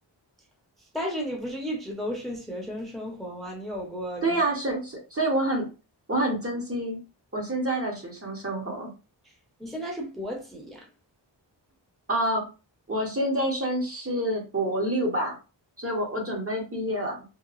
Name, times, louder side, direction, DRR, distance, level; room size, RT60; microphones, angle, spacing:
voice 1, 0.9-4.4 9.6-10.9, equal, ahead, 0.8 m, -34 dB
voice 2, 4.2-5.7 6.1-7.0 7.3-8.9 12.1-12.5 12.9-15.4 15.8-17.2, right 1 dB, 30° right, 1.0 m, -27 dB
2.8 x 2.3 x 2.4 m
wide cardioid pair, 65°, 45 cm